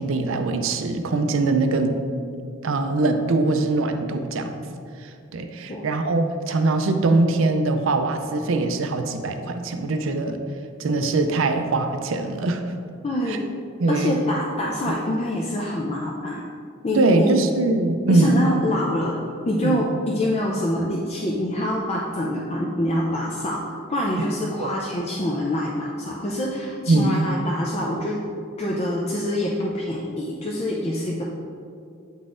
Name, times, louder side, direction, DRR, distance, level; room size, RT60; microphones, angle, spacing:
voice 1, 0.0-2.0 2.6-4.6 5.0-10.4 10.8-12.6 13.3-13.4 13.8-14.1 16.9-18.4 19.6-19.8 24.6-24.7 26.9-27.2, right 2 dB, 70° right, 7 dB, 0.5 m, -22 dB
voice 2, 13.0-13.4 13.9-16.5 16.8-17.4 18.1-28.2 28.6-31.2, left 1 dB, 30° left, -2 dB, 0.4 m, -25 dB
8.0 x 4.0 x 3.7 m, 2.4 s
head